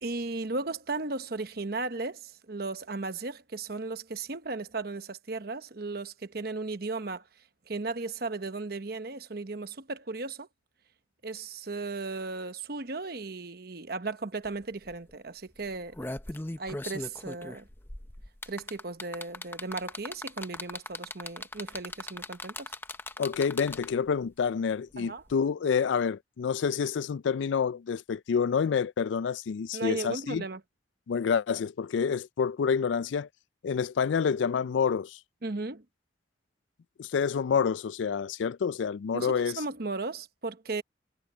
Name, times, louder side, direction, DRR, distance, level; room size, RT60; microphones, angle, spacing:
voice 1, 0.0-7.2 7.7-10.5 11.2-16.0 16.6-17.7 18.5-22.7 25.0-25.2 29.7-30.6 35.4-35.8 39.1-40.8, right 3 dB, 55° right, 1.0 m, -36 dB
sound 1, 14.4-14.5 14.8-15.1 15.7-24.1 25.3-25.4, left 2 dB, 10° left, 0.6 m, -39 dB
voice 2, 23.2-30.4 31.1-33.3 33.6-35.2 37.0-39.6, left 6 dB, 80° left, 0.4 m, -28 dB
head